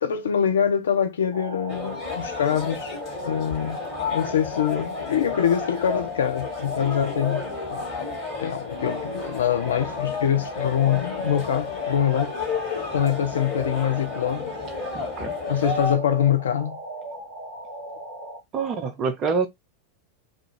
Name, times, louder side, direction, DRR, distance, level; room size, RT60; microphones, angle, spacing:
voice 1, 0.0-2.9 3.2-3.8 4.1-7.4 7.7-7.8 8.4-12.4 12.9-14.5 15.5-16.8, left 9 dB, 65° left, 0.4 m, -24 dB
sound 1, 1.3-18.4, right 1 dB, 80° left, 1.1 m, -37 dB
sound 2, 1.7-15.9, left 5 dB, 30° left, 1.5 m, -32 dB
voice 2, 14.9-15.3 18.5-19.5, right 5 dB, 30° right, 0.5 m, -26 dB
2.4 x 2.4 x 2.8 m
figure-of-eight pair, 90°, 0 cm